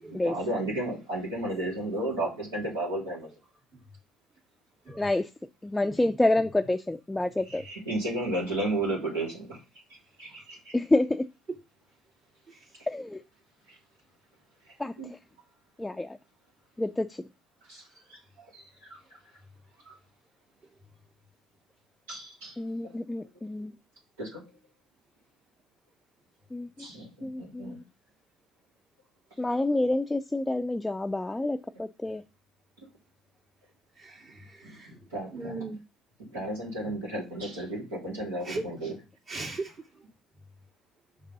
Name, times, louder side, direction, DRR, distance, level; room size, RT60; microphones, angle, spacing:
voice 1, 0.2-3.3 7.5-9.6 10.2-10.7 15.0-15.1 17.7-17.8 18.1-18.2 18.5-19.0 19.9-20.0 22.1-22.6 22.8-22.9 24.2-24.4 26.8-27.8 34.6-35.5 36.2-38.9, right 1 dB, 90° right, -5 dB, 3.1 m, -33 dB
voice 2, 5.0-5.3 5.6-7.7 10.7-11.3 12.9-13.2 14.8-14.9 15.8-16.2 16.8-17.2 22.6-23.7 26.5-26.9 27.2-27.8 29.4-32.2, left 2 dB, 10° left, 8 dB, 0.4 m, -28 dB
voice 3, 5.8-6.2 12.5-12.7 34.0-35.8 36.8-36.9 38.4-38.7 39.3-40.0, right 2 dB, 45° right, 1 dB, 2.5 m, -39 dB
5.4 x 3.8 x 5.3 m, 0.27 s
hypercardioid pair, 65°, 0 cm